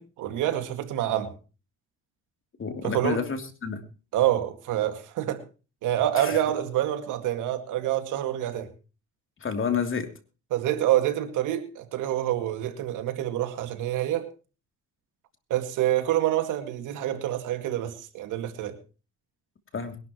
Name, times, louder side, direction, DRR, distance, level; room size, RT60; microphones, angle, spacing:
voice 1, 0.0-1.3 2.8-3.2 4.1-5.4 5.8-8.7 10.5-14.3 15.5-18.8, right 12 dB, 90° right, 2.1 m, -27 dB
voice 2, 2.6-3.8 6.2-6.4 9.4-10.1 19.7-20.0, left 6 dB, 40° left, 3.0 m, -29 dB
21.5 x 12.0 x 3.0 m
cardioid pair, 90°, 30 cm